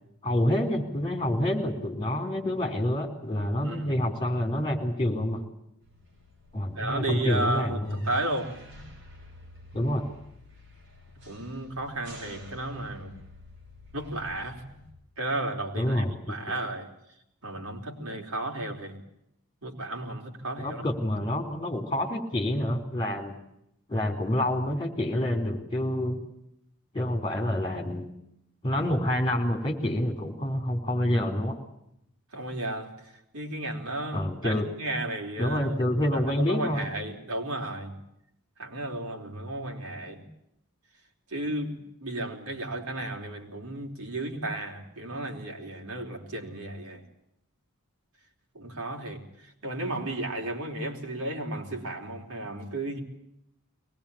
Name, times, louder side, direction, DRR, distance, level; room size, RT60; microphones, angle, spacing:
voice 1, 0.2-5.4 6.5-8.0 9.7-10.0 15.7-16.6 20.6-23.4 23.9-26.2 26.9-28.1 28.6-31.6 34.1-34.7 35.4-36.9, left 1 dB, 20° left, 3 dB, 3.9 m, -27 dB
voice 2, 3.6-4.0 6.8-8.8 11.3-13.1 13.9-14.8 15.2-16.9 17.4-19.0 19.6-20.8 32.3-35.8 36.1-38.0 38.6-40.2 41.3-47.0 48.5-49.2 49.6-53.0, right 1 dB, 75° right, 1 dB, 4.3 m, -34 dB
sound 1, 5.8-14.9, left 1 dB, 55° right, 7.1 m, -50 dB
23.0 x 19.5 x 8.7 m, 0.79 s
head